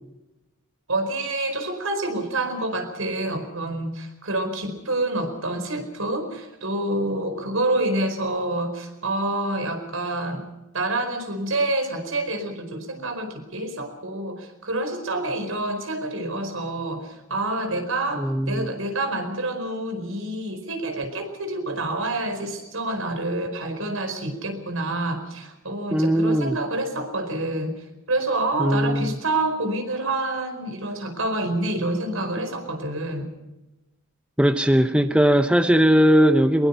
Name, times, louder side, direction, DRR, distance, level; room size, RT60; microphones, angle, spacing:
voice 1, 0.9-10.4 10.7-27.7 28.1-33.3, right 2 dB, 75° right, 7 dB, 4.8 m, -27 dB
voice 2, 18.2-18.7 25.9-26.6 28.6-29.2 34.4-36.7, equal, 5° right, 9 dB, 0.7 m, -19 dB
22.5 x 22.0 x 5.7 m, 0.99 s
head